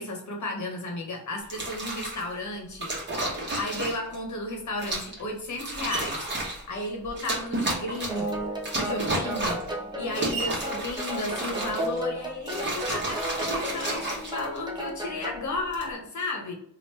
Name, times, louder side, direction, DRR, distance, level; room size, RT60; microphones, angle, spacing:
voice 1, 0.0-2.9 3.5-16.5, left 2 dB, 55° left, 1 dB, 1.1 m, -34 dB
sound 1, 1.4-2.2 2.8-4.2 4.8-5.2 5.5-6.6 7.2-8.3 8.6-9.7 10.1-12.0 12.4-14.8 15.5-15.9, right 1 dB, 30° right, 1.1 m, -32 dB
Screech, 3.5-4.0 4.7-7.5 7.7-12.0, right 5 dB, 85° right, 1.0 m, -42 dB
sound 2, 8.1-15.5, right 1 dB, 15° right, 0.6 m, -34 dB
3.0 x 2.6 x 3.2 m, 0.70 s
wide cardioid pair, 130°, 35 cm